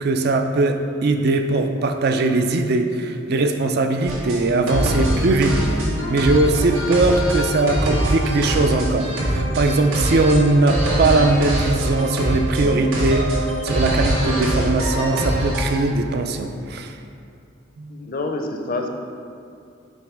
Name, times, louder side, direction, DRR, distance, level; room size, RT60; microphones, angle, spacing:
voice 1, 0.0-17.0 17.8-18.0, right 2 dB, 55° right, 7 dB, 0.4 m, -20 dB
sound 1, 4.1-15.8, right 1 dB, 85° right, 1.3 m, -23 dB
voice 2, 17.9-18.9, left 2 dB, 45° left, 4 dB, 0.5 m, -27 dB
7.7 x 3.1 x 5.0 m, 2.5 s
head